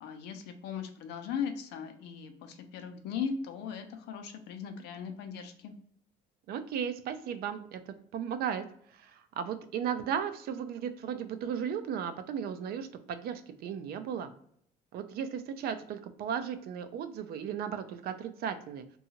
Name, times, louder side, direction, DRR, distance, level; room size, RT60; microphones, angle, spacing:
voice 1, 0.0-5.7, left 7 dB, 85° left, 6 dB, 0.5 m, -38 dB
voice 2, 6.5-8.6 8.9-14.3 14.9-18.9, right 8 dB, 65° right, 10 dB, 0.4 m, -35 dB
2.8 x 2.3 x 2.7 m, 0.64 s
cardioid pair, 110°, 17 cm